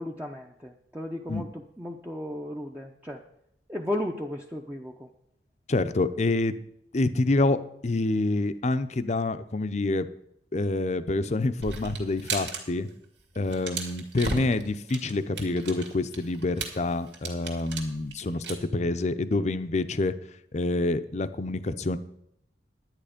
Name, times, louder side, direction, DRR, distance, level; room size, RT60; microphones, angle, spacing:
voice 1, 0.0-3.2 3.7-5.1, left 1 dB, 10° right, 0 dB, 0.6 m, -35 dB
voice 2, 5.7-6.5 6.9-7.6 7.8-10.1 10.5-12.9 13.4-20.1 20.5-22.0, left 2 dB, 40° left, 11 dB, 0.6 m, -27 dB
sound 1, 11.6-12.6 12.9-13.0 13.3-18.5, right 3 dB, 85° right, 2.3 m, -35 dB
11.0 x 9.6 x 5.1 m, 0.75 s
head